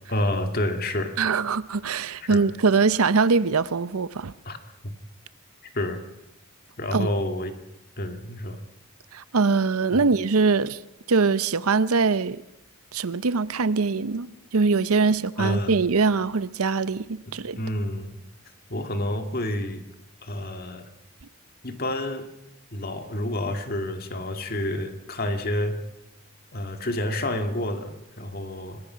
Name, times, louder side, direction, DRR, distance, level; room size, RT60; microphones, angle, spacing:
voice 1, 0.1-1.2 2.2-2.5 4.5-4.6 4.8-4.9 5.7-6.0 6.8-7.5 8.0-8.6 9.9-10.0 15.4-15.7 17.3-18.2 18.7-19.8 20.2-20.9 21.6-22.3 22.7-25.8 26.5-28.8, left 1 dB, 45° left, 2.2 m, -29 dB
voice 2, 1.2-4.3 6.9-7.1 9.1-10.8 11.1-12.4 12.9-17.6, right 4 dB, 90° right, 0.7 m, -22 dB
25.5 x 20.5 x 5.8 m
head